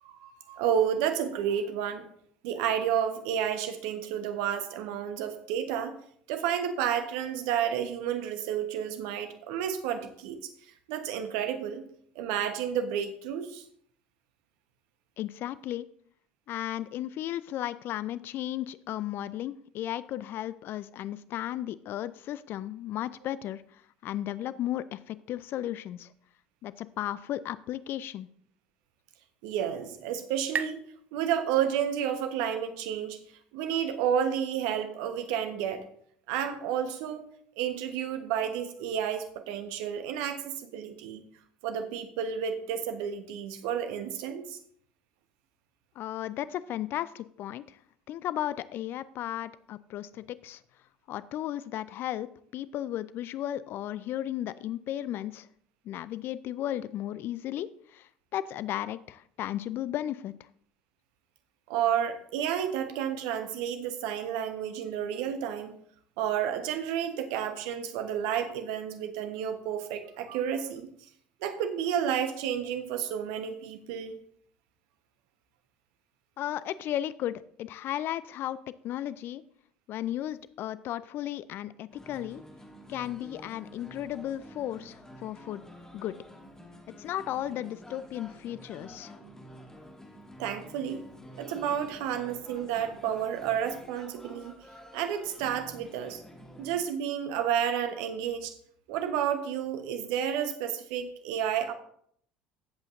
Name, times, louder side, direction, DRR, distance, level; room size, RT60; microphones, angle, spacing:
voice 1, 0.0-2.1 2.4-5.9 6.3-10.4 10.9-11.8 12.1-13.6 29.4-30.8 31.1-33.2 33.5-35.8 36.3-37.3 37.6-41.2 41.6-44.6 61.7-65.8 66.2-71.1 71.4-74.2 90.4-91.0 91.4-94.5 94.9-96.2 96.6-98.5 98.9-101.7, right 9 dB, 65° right, 8 dB, 1.2 m, -31 dB
voice 2, 15.2-15.9 16.5-26.1 26.6-28.3 46.0-47.8 48.1-50.6 51.1-55.5 55.8-60.3 76.4-78.6 78.8-79.4 79.9-82.4 82.9-85.6 85.9-86.2 87.0-89.2, left 12 dB, 50° left, 17 dB, 0.4 m, -35 dB
sound 1, 29.1-32.5, right 7 dB, 35° right, 0.5 m, -41 dB
sound 2, 81.9-96.9, equal, 10° left, 2.2 m, -49 dB
14.5 x 8.0 x 2.7 m, 0.65 s
figure-of-eight pair, 65°, 5 cm